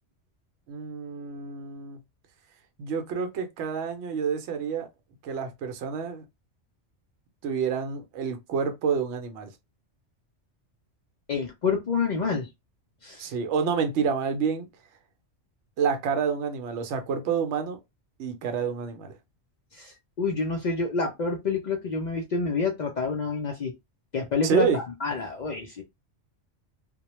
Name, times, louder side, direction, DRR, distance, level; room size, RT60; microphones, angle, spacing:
voice 1, 0.7-2.0 2.8-4.9 5.2-6.2 7.4-9.5 13.2-14.7 15.8-17.8 18.2-19.1 24.4-24.8, right 6 dB, 70° right, 0.8 m, -28 dB
voice 2, 11.3-12.5 13.0-13.3 19.7-23.7 24.1-25.8, left 4 dB, 60° left, 0.4 m, -28 dB
2.2 x 2.1 x 2.9 m
omnidirectional pair, 1.2 m